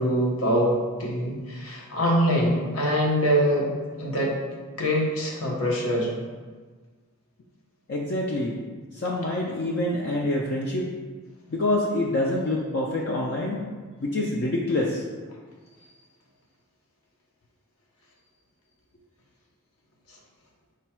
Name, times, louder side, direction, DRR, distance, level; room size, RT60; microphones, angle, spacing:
voice 1, 0.0-3.7 4.0-4.4 4.8-6.1, equal, 80° left, -2 dB, 0.9 m, -24 dB
voice 2, 7.9-8.6 8.9-10.9 11.5-13.6 14.0-15.0, left 1 dB, 50° left, -2 dB, 0.4 m, -26 dB
4.9 x 2.2 x 4.2 m, 1.5 s
head